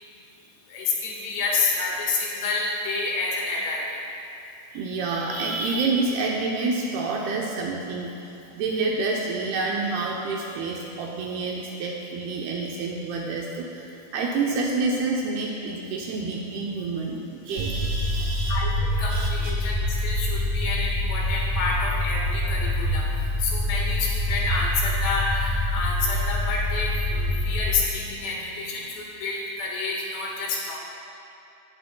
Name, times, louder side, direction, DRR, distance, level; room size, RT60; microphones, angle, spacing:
voice 1, 0.7-3.9 18.5-30.8, left 3 dB, 75° left, -3 dB, 3.5 m, -28 dB
voice 2, 4.7-8.1 8.5-18.6 19.1-19.5 28.0-28.3 28.7-29.0, right 3 dB, 75° right, -2 dB, 2.4 m, -28 dB
sound 1, 17.6-27.7, left 1 dB, 50° right, 2.4 m, -26 dB
18.5 x 9.8 x 2.2 m, 2.8 s
omnidirectional pair, 5.1 m